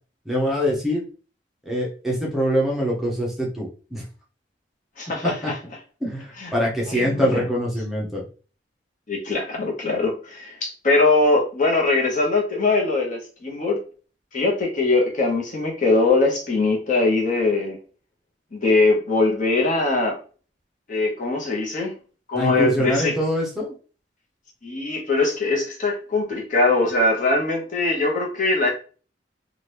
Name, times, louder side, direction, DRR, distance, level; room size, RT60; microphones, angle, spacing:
voice 1, 0.3-1.0 1.7-4.0 5.2-5.5 6.0-8.2 22.3-23.7, equal, ahead, -3 dB, 0.8 m, -24 dB
voice 2, 5.0-5.6 6.4-6.5 6.9-7.5 9.1-13.8 14.3-17.8 18.5-20.2 20.9-21.9 22.3-23.2 24.6-28.7, left 3 dB, 50° left, 0 dB, 0.9 m, -21 dB
2.9 x 2.4 x 3.3 m, 0.38 s
head